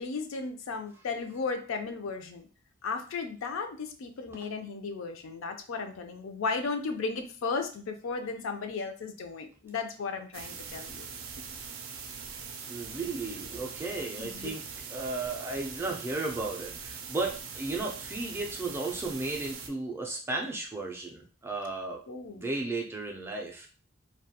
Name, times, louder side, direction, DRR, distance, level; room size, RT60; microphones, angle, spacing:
voice 1, 0.0-2.5 2.8-11.1 14.2-14.5 22.1-22.4, left 4 dB, 70° left, 7 dB, 0.4 m, -35 dB
sound 1, 10.3-19.7, right 6 dB, 80° right, 0.4 m, -42 dB
voice 2, 12.7-14.6 14.9-22.0 22.3-23.7, right 3 dB, 10° right, 1 dB, 0.3 m, -34 dB
2.3 x 2.2 x 2.7 m, 0.38 s
head